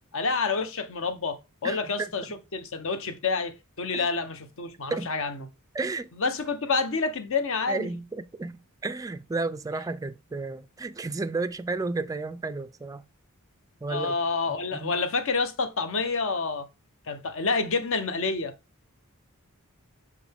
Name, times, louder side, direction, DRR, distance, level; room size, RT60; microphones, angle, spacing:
voice 1, 0.1-5.5 6.2-7.9 13.9-16.7 17.1-18.5, left 4 dB, 60° left, 0.9 m, -28 dB
voice 2, 1.6-2.1 3.9-4.1 4.9-5.1 5.7-6.1 7.7-13.0 13.8-14.2 14.7-14.9, right 3 dB, 15° right, 0.3 m, -32 dB
6.7 x 5.0 x 3.4 m
head